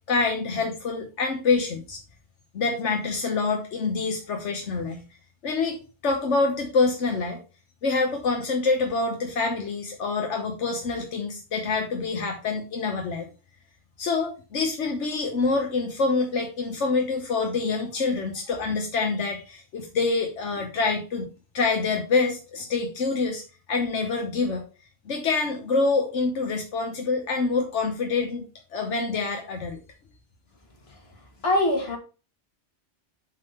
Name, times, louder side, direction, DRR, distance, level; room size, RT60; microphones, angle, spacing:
voice 1, 0.1-2.0 2.5-5.0 5.4-5.8 6.0-7.4 7.8-13.3 14.0-21.3 21.5-23.4 23.7-24.6 25.1-28.5 28.7-29.8, left 4 dB, 85° left, 3 dB, 1.4 m, -26 dB
voice 2, 31.4-32.0, left 1 dB, 60° left, 2 dB, 2.1 m, -22 dB
7.3 x 3.7 x 5.5 m, 0.34 s
omnidirectional pair, 1.2 m